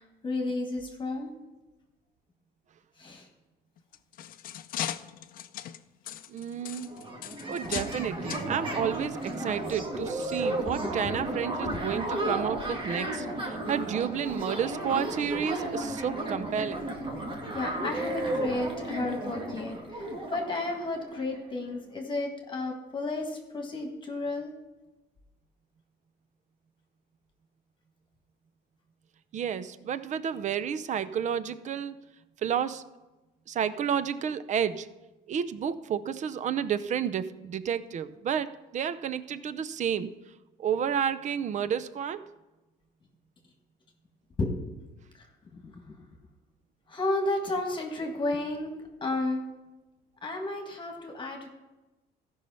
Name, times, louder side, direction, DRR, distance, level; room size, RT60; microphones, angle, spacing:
voice 1, 0.0-1.3 3.0-3.3 7.6-7.8 10.7-11.2 11.6-11.8 15.2-15.3 17.5-24.5 44.4-44.7 45.1-45.3 45.5-46.0 46.9-49.4 50.2-51.5, left 2 dB, 30° left, 2 dB, 1.7 m, -33 dB
sound 1, 3.8-8.0 8.3-8.5 9.2-9.3 9.8-9.9, left 11 dB, 60° left, 0.5 m, -38 dB
voice 2, 6.3-6.9 7.5-16.9 29.3-32.0 32.4-32.8 33.5-34.9 35.3-40.1 40.6-42.3, right 8 dB, 45° right, 14 dB, 0.6 m, -31 dB
sound 2, 6.6-6.7 6.8-21.4, right 1 dB, 30° right, 1.7 m, -34 dB
14.0 x 5.5 x 5.6 m, 1.1 s
cardioid pair, 110°, 17 cm